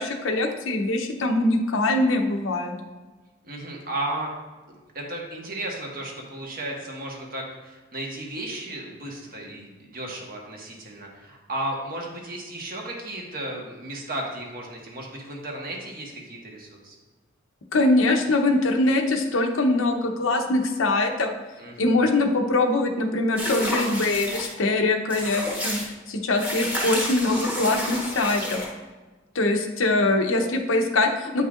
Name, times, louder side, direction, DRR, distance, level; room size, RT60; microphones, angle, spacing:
voice 1, 0.0-2.7 17.7-21.3 21.8-25.8 26.1-28.6 29.3-31.4, left 2 dB, 90° left, 4 dB, 0.8 m, -23 dB
voice 2, 3.4-4.3 4.7-16.9 21.6-21.9, right 1 dB, 45° right, 0 dB, 1.2 m, -34 dB
sound 1, 23.4-24.5 25.1-25.9 26.4-28.7, equal, 5° right, 1.1 m, -30 dB
8.4 x 5.5 x 2.5 m, 1.2 s
head